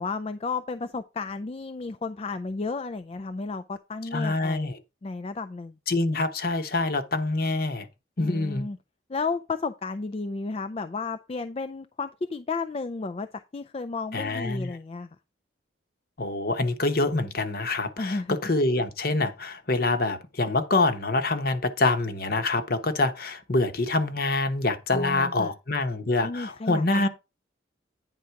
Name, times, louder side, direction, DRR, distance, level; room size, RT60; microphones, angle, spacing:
voice 1, 0.0-4.7 5.0-5.8 8.2-8.8 9.1-15.1 18.0-18.4 24.9-25.5 26.2-27.1, left 4 dB, 30° left, 0.3 m, -33 dB
voice 2, 4.1-4.8 5.9-7.9 8.2-8.7 14.1-14.8 16.2-27.1, left 2 dB, 50° left, 1.0 m, -26 dB
9.4 x 3.8 x 5.7 m
head